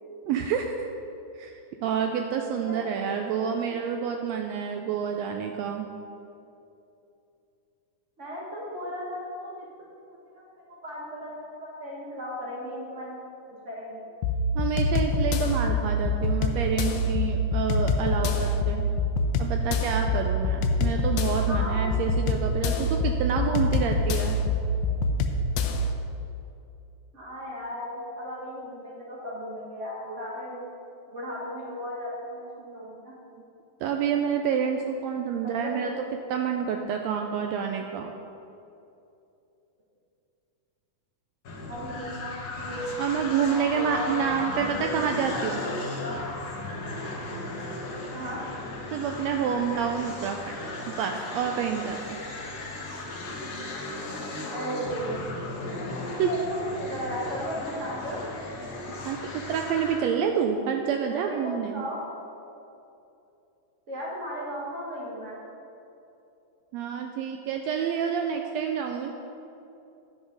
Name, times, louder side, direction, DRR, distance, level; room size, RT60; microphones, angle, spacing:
voice 1, 0.3-0.9 1.3-5.9 14.5-18.9 19.4-24.4 33.8-35.9 36.3-38.1 43.0-45.6 48.9-50.6 50.8-52.0 56.2-56.3 59.0-61.8 66.7-69.1, right 7 dB, 80° right, 4 dB, 1.6 m, -28 dB
voice 2, 2.7-3.0 3.6-3.9 8.2-9.7 10.1-10.2 10.8-13.2 13.4-14.1 21.4-22.0 22.6-22.9 27.1-30.6 31.1-33.1 35.6-36.2 41.7-44.4 44.6-45.0 45.3-45.7 46.0-46.2 48.1-48.4 54.5-55.3 56.2-58.2 61.0-62.0 63.9-65.4, equal, 60° right, -6 dB, 0.7 m, -36 dB
sound 1, 14.2-25.9, left 2 dB, 90° left, 2.1 m, -25 dB
sound 2, 41.4-60.1, left 2 dB, 65° left, 0.9 m, -36 dB
11.0 x 6.2 x 5.2 m, 2.8 s
omnidirectional pair, 3.4 m